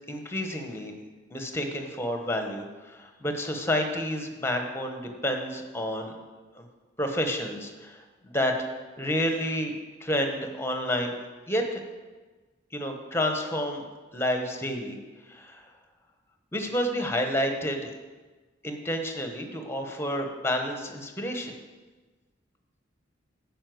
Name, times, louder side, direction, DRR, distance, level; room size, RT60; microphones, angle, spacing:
voice 1, 0.1-0.9 1.3-6.1 6.6-6.7 7.0-8.5 9.0-9.7 10.0-11.1 11.5-11.8 12.7-13.8 14.1-15.0 15.3-15.7 16.5-17.9 18.6-21.5, equal, 15° left, 4 dB, 1.1 m, -29 dB
9.8 x 5.3 x 7.8 m, 1.3 s
head